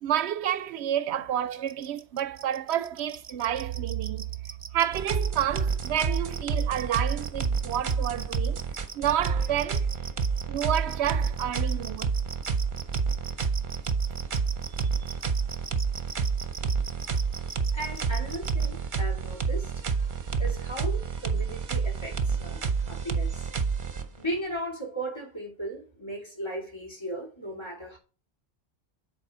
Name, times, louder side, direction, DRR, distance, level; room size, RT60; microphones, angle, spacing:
voice 1, 0.0-4.2 4.7-8.6 8.9-9.9 10.5-12.1, right 10 dB, 90° right, 0.9 m, -29 dB
sound 1, 1.5-18.7, right 4 dB, 30° right, 0.4 m, -41 dB
sound 2, 4.9-24.4, right 5 dB, 50° right, 1.0 m, -29 dB
voice 2, 17.7-20.1 20.4-23.5 24.2-28.0, right 1 dB, 25° left, 3.0 m, -37 dB
7.4 x 4.5 x 5.4 m
omnidirectional pair, 1.1 m